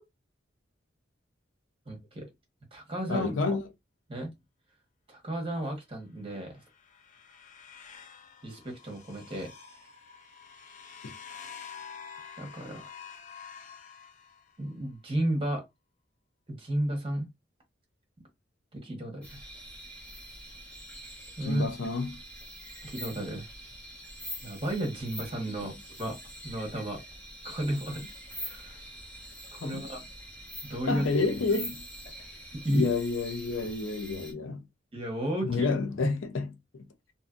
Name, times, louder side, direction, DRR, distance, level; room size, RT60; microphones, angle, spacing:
voice 1, 1.9-2.3 2.7-3.6 4.1-4.3 5.1-6.6 8.4-9.5 12.4-12.9 14.6-15.6 16.5-17.3 18.7-19.4 21.4-21.7 22.8-23.5 24.4-26.2 26.4-27.0 27.4-28.1 28.4-28.8 29.5-30.0 30.6-31.1 32.5-32.9 34.9-35.7, right 1 dB, 30° right, 1.0 m, -33 dB
voice 2, 3.1-3.6 11.0-11.1 21.4-22.2 29.6-29.9 30.9-31.8 32.7-34.6 35.4-36.8, left 3 dB, 90° left, 0.6 m, -29 dB
sound 1, 6.4-14.7, left 6 dB, 40° left, 0.5 m, -48 dB
sound 2, 19.2-34.3, equal, 10° left, 1.0 m, -44 dB
2.7 x 2.5 x 2.5 m
head